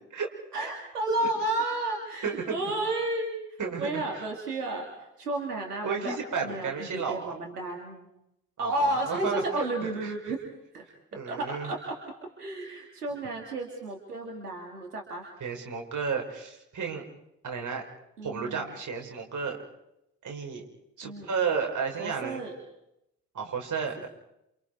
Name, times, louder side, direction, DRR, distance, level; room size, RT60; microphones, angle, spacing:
voice 1, 0.5-3.4 3.8-4.9 5.2-6.2 6.4-8.1 8.6-10.4 10.7-10.8 11.3-12.0 12.4-15.3 18.2-18.7 21.0-21.3 22.0-22.6, right 2 dB, 85° right, 1 dB, 2.5 m, -32 dB
voice 2, 2.2-2.6 3.6-4.0 5.8-7.4 8.6-9.4 9.8-10.1 11.1-11.7 15.4-17.0 17.4-17.8 18.2-19.6 20.2-20.6 21.0-22.4 23.3-24.1, right 5 dB, 40° right, 1 dB, 5.4 m, -32 dB
28.0 x 28.0 x 4.7 m, 0.82 s
figure-of-eight pair, 45°, 45 cm